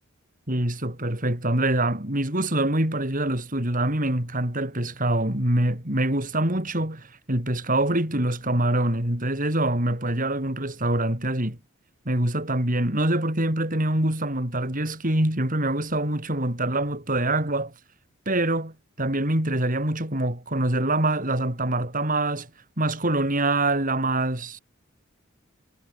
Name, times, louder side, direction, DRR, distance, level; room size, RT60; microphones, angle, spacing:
voice 1, 0.5-11.6 12.1-17.7 18.3-22.5 22.8-24.6, right 1 dB, 40° right, 5.4 m, -25 dB
head